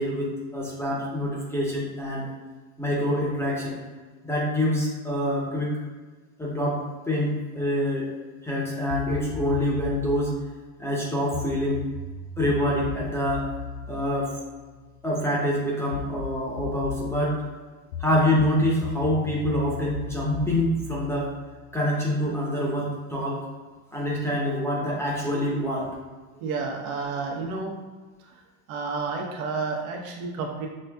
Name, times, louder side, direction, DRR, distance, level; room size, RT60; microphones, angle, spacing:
voice 1, 0.0-2.3 2.8-3.8 4.2-5.7 6.4-8.1 8.4-10.4 10.8-11.9 12.4-13.5 13.9-14.4 15.0-17.4 18.0-21.3 21.7-23.4 23.9-25.9, left 1 dB, 5° left, -4 dB, 0.6 m, -26 dB
sound 1, 8.9-10.2 11.3-15.0 15.9-17.2 17.9-21.8, left 5 dB, 80° left, 0.6 m, -36 dB
voice 2, 26.3-27.7 28.2-28.4 28.7-30.7, right 4 dB, 85° right, 0 dB, 1.0 m, -31 dB
6.2 x 2.6 x 2.2 m, 1.4 s
supercardioid pair, 145°, 41 cm